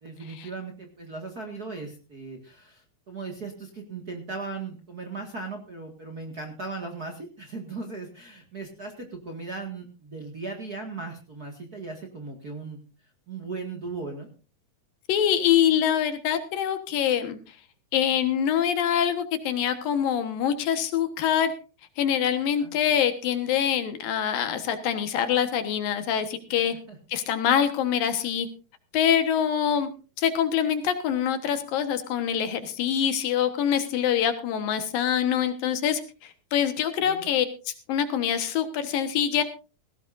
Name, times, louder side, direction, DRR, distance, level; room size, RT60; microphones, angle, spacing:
voice 1, 0.0-12.8 13.3-14.3 22.6-22.7 26.5-27.0 37.0-37.3, right 3 dB, 35° right, 2 dB, 1.7 m, -38 dB
voice 2, 15.1-17.4 17.9-21.5 22.0-26.7 27.1-28.5 28.9-29.9 30.2-39.4, left 9 dB, 70° left, 9 dB, 3.0 m, -25 dB
18.0 x 16.5 x 2.6 m, 0.34 s
omnidirectional pair, 4.3 m